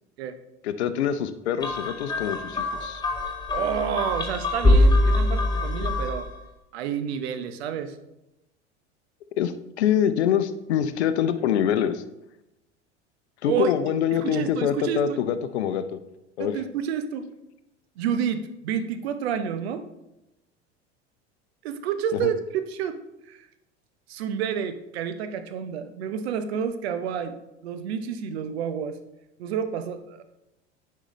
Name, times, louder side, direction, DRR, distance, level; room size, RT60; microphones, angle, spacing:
voice 1, 0.6-3.0 9.4-12.0 13.4-16.0 16.4-16.6 22.2-22.3, left 9 dB, 65° left, 11 dB, 0.7 m, -25 dB
sound 1, 1.6-6.4, left 1 dB, 10° left, 1.2 m, -23 dB
voice 2, 3.5-6.3 6.7-8.0 13.5-13.7 14.1-15.2 16.4-17.3 18.0-19.9 21.6-23.0 23.3-23.5 24.1-29.0 29.4-30.2, right 8 dB, 60° right, 9 dB, 0.9 m, -29 dB
9.8 x 5.6 x 3.1 m, 0.92 s
figure-of-eight pair, 75°, 35 cm